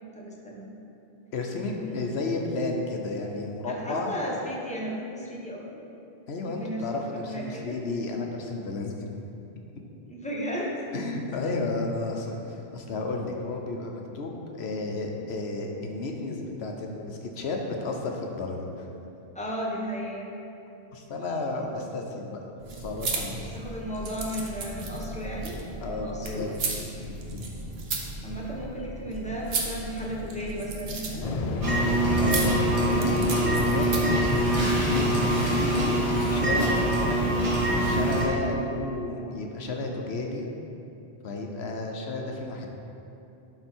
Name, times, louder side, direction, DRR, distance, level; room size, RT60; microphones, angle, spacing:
voice 1, 0.1-0.7 1.6-2.0 3.7-5.6 6.4-6.8 7.3-7.8 10.1-10.8 19.3-20.3 23.5-25.6 25.9-26.5 28.2-31.3, equal, 5° left, -4 dB, 1.1 m, -34 dB
voice 2, 1.3-4.1 6.3-9.0 10.9-18.9 20.9-22.4 22.8-23.5 25.8-26.5 27.1-27.4 32.2-34.2 34.8-37.3 37.7-40.5 41.2-42.7, left 2 dB, 80° left, 2 dB, 1.1 m, -32 dB
sound 1, 22.6-34.3, right 3 dB, 70° right, 1.1 m, -35 dB
Waves surf, 31.2-38.4, left 2 dB, 50° left, 0.5 m, -31 dB
sound 2, 31.6-38.3, right 1 dB, 30° right, 1.2 m, -24 dB
11.5 x 4.0 x 4.4 m, 2.8 s
omnidirectional pair, 1.1 m